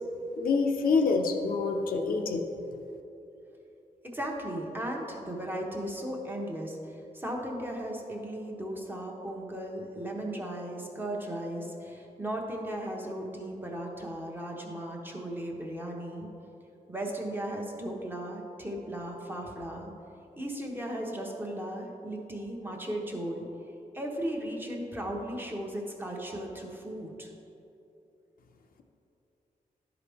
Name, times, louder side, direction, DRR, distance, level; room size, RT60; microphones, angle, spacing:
voice 1, 0.4-2.4, left 4 dB, 80° left, 3 dB, 0.7 m, -26 dB
voice 2, 4.0-16.3 16.9-19.9 20.4-23.5 23.9-27.3, right 1 dB, 15° right, -1 dB, 0.9 m, -36 dB
11.5 x 4.9 x 3.5 m, 2.9 s
wide cardioid pair, 150°, 15 cm